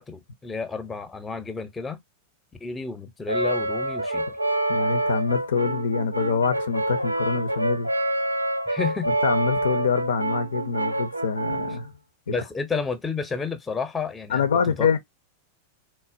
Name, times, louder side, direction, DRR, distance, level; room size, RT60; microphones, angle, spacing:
voice 1, 0.0-2.0 2.6-4.3 8.7-9.1 12.3-14.5 14.8-14.9, left 5 dB, 15° left, 0.6 m, -31 dB
Brass instrument, 3.3-11.8, right 1 dB, 85° right, 0.3 m, -27 dB
voice 2, 4.7-7.9 9.2-11.9 12.3-12.4 14.3-15.0, left 6 dB, 65° left, 0.4 m, -25 dB
4.1 x 2.1 x 2.4 m
figure-of-eight pair, 90°, 0 cm